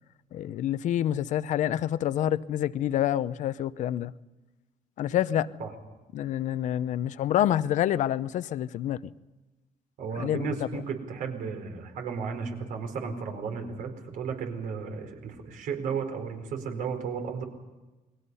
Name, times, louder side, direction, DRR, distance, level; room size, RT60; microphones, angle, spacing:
voice 1, 0.3-4.1 5.0-5.6 6.1-9.0 10.2-10.6, left 11 dB, 60° left, 0.8 m, -27 dB
voice 2, 10.0-17.4, right 6 dB, 75° right, 4.7 m, -34 dB
29.0 x 22.0 x 5.6 m
cardioid pair, 155°, 14 cm